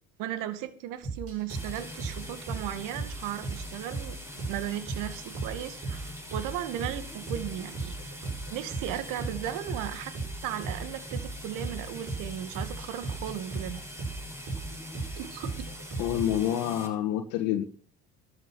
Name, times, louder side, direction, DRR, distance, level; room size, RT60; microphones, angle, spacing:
voice 1, 0.2-8.0 8.5-10.1 10.4-13.8 15.2-15.7, right 11 dB, 65° right, 12 dB, 2.2 m, -36 dB
sound 1, 1.0-16.4, right 3 dB, 40° right, 7.0 m, -37 dB
sound 2, 1.5-16.9, equal, 10° right, 6.7 m, -43 dB
voice 2, 16.0-17.6, left 11 dB, 65° left, 6 dB, 1.8 m, -27 dB
12.5 x 10.5 x 6.3 m, 0.43 s
hypercardioid pair, 80°, 34 cm